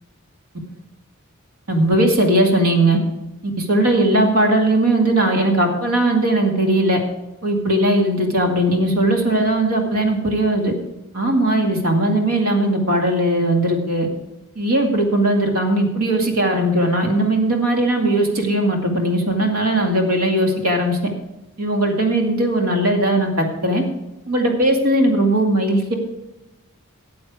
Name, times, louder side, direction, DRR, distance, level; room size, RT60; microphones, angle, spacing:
voice 1, 1.7-3.0 3.6-7.0 7.4-10.7 11.1-14.1 14.6-21.0 21.6-23.8 24.3-26.0, right 1 dB, 80° right, 2 dB, 2.2 m, -18 dB
13.5 x 8.3 x 4.8 m, 0.95 s
head